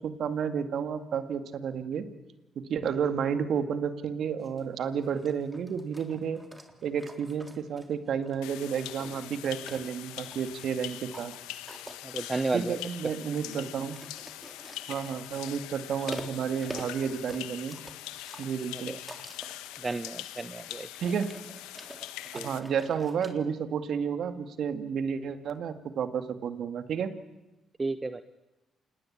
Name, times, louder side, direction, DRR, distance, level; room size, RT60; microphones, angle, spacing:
voice 1, 0.0-2.1 2.7-6.4 6.8-11.3 12.5-14.0 14.9-17.8 18.4-18.9 21.0-21.3 22.3-27.1, right 7 dB, 70° right, 10 dB, 2.1 m, -31 dB
sound 1, 4.4-23.3, right 1 dB, 10° right, 3.9 m, -48 dB
sound 2, 8.4-22.6, left 15 dB, 90° left, 1.1 m, -42 dB
voice 2, 12.0-12.8 19.8-20.9 22.3-22.5 27.8-28.2, right 3 dB, 30° right, 12 dB, 1.0 m, -32 dB
27.5 x 20.0 x 8.7 m, 1.0 s
supercardioid pair, 60°, 0 cm